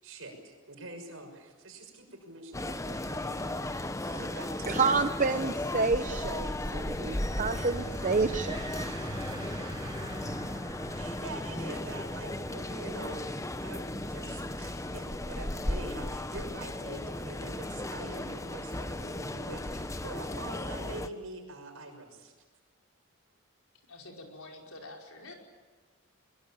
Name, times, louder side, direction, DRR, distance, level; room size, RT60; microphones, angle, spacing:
voice 1, 0.0-4.9 7.5-7.7 10.9-22.3, right 2 dB, 70° right, 3 dB, 6.3 m, -44 dB
sound 1, 2.5-21.1, left 1 dB, 15° left, 0.8 m, -36 dB
voice 2, 4.7-8.6, right 4 dB, 35° right, 8 dB, 0.7 m, -29 dB
sound 2, 6.4-17.5, right 1 dB, 20° right, 5.2 m, -45 dB
voice 3, 23.9-25.3, left 2 dB, 75° left, 1 dB, 5.1 m, -47 dB
23.0 x 23.0 x 8.8 m, 1.4 s
head